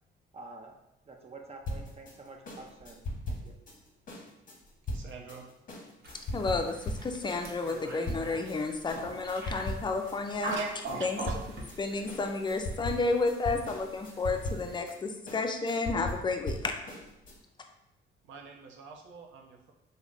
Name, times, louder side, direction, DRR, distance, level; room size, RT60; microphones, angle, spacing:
voice 1, 0.3-0.8 1.1-3.6, right 3 dB, 30° right, 2 dB, 0.5 m, -48 dB
sound 1, 1.7-8.6 8.9-10.2 10.5-17.4, left 1 dB, 45° left, 0.8 m, -39 dB
voice 2, 4.9-5.5 10.5-11.4 18.2-19.7, right 4 dB, 75° right, 2 dB, 0.6 m, -42 dB
sound 2, 6.0-14.8, right 2 dB, 55° right, 0.9 m, -44 dB
voice 3, 6.3-10.5 11.0-11.2 11.8-16.7, left 3 dB, 25° left, 4 dB, 0.4 m, -31 dB
3.2 x 2.1 x 3.8 m, 0.87 s
cardioid pair, 90°, 20 cm